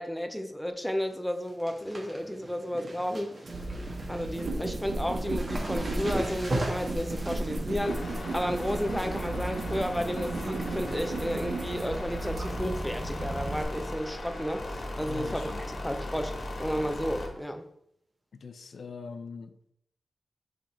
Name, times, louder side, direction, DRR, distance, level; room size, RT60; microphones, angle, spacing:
voice 1, 0.0-3.4 4.1-16.3 16.6-17.7, equal, 5° left, 6 dB, 0.6 m, -32 dB
sound 1, 0.7-1.0 1.3-10.5 10.8-11.3 11.6-12.4 12.8-12.9 13.8-14.1 14.3-14.4 14.8-14.9 16.5-16.6 17.4-17.5, right 1 dB, 40° right, 1.5 m, -39 dB
sound 2, 3.5-13.6, right 2 dB, 70° right, 0.8 m, -34 dB
sound 3, 7.8-17.3, left 1 dB, 55° left, 1.5 m, -38 dB
voice 2, 15.1-15.6 18.4-19.7, left 5 dB, 80° left, 9 dB, 0.5 m, -42 dB
5.2 x 5.1 x 4.4 m, 0.73 s
wide cardioid pair, 95°, 0 cm